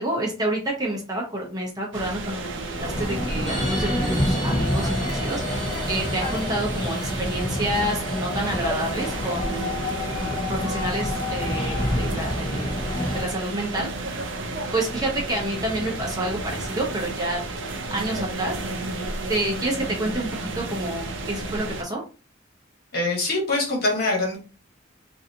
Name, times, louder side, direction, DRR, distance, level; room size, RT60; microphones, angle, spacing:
voice 1, 0.0-9.8 10.5-12.8 13.1-13.9 14.7-17.4 17.9-18.6 19.3-20.3 20.5-22.0, right 1 dB, 20° right, -2 dB, 0.8 m, -29 dB
sound 1, 1.9-21.8, right 2 dB, 65° right, 0.6 m, -32 dB
sound 2, 2.8-13.2, left 1 dB, 20° left, 0.6 m, -28 dB
sound 3, 3.4-9.1, equal, ahead, 1.4 m, -36 dB
voice 2, 22.9-24.4, left 2 dB, 50° left, -1 dB, 1.4 m, -23 dB
3.8 x 2.6 x 2.8 m, 0.35 s
head